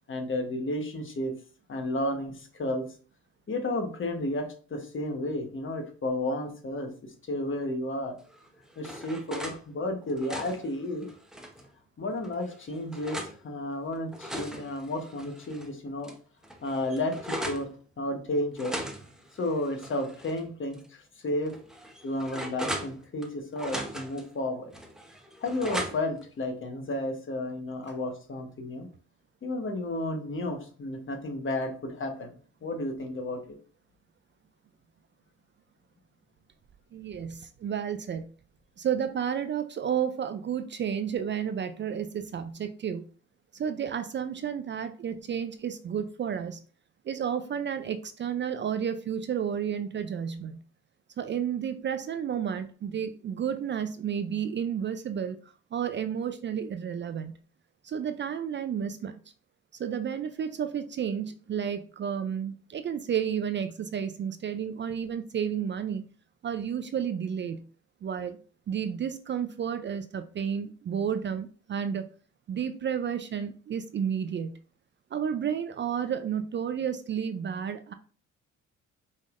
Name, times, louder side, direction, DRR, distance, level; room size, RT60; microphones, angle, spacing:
voice 1, 0.1-1.3 1.7-2.9 3.5-8.2 8.8-11.1 12.0-16.1 16.6-17.7 18.0-18.8 19.3-21.5 22.0-24.7 25.4-28.9 29.4-33.4, left 1 dB, 40° left, 4 dB, 1.2 m, -32 dB
sound 1, 8.3-9.6 10.0-11.7 12.2-13.4 13.9-15.7 16.0-16.1 16.4-17.7 18.5-20.4 20.7-20.8 21.5-23.3 23.6-24.2 24.7-26.2, equal, ahead, 0.9 m, -38 dB
voice 2, 36.9-38.3 38.8-43.1 43.5-46.6 47.1-50.6 51.2-55.4 55.7-57.3 57.8-59.2 59.8-66.0 66.4-67.6 68.0-68.4 68.7-72.0 72.5-74.5 75.1-77.9, right 8 dB, 40° right, 9 dB, 0.4 m, -31 dB
5.5 x 3.4 x 2.5 m, 0.41 s
cardioid pair, 90°, 30 cm